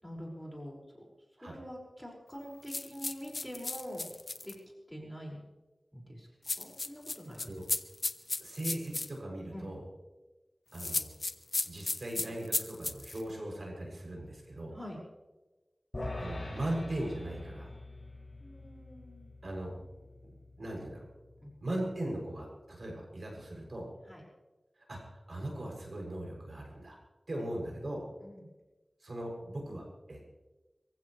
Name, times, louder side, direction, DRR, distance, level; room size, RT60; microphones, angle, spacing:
voice 1, 0.0-1.1 1.4-4.0 4.4-4.5 4.9-5.5 5.9-6.3 6.6-7.5 9.5-9.7 14.7-15.0 18.4-19.3 21.4-21.6 24.1-24.3 28.2-28.5, equal, 5° left, -2 dB, 5.8 m, -45 dB
sound 1, 2.7-4.5 6.4-9.1 10.7-13.2, left 3 dB, 55° left, 1.0 m, -34 dB
voice 2, 8.4-9.8 10.7-11.1 11.6-14.8 16.2-17.7 19.4-19.7 20.2-21.1 21.6-23.9 24.9-27.0 27.3-28.0 29.0-30.2, right 1 dB, 60° right, -1 dB, 7.4 m, -39 dB
sound 2, 15.9-22.3, left 2 dB, 35° left, 6.5 m, -45 dB
26.5 x 16.0 x 3.4 m, 1.1 s
wide cardioid pair, 60°, 0 cm